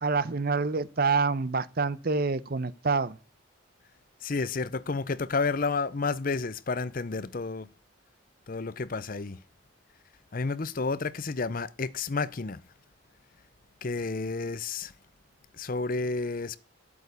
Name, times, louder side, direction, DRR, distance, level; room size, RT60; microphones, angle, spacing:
voice 1, 0.0-3.2, right 4 dB, 45° right, 0.7 m, -27 dB
voice 2, 4.2-7.7 8.5-9.4 10.3-12.6 13.8-14.9 15.5-16.6, left 4 dB, 40° left, 0.6 m, -31 dB
11.5 x 8.4 x 8.2 m
head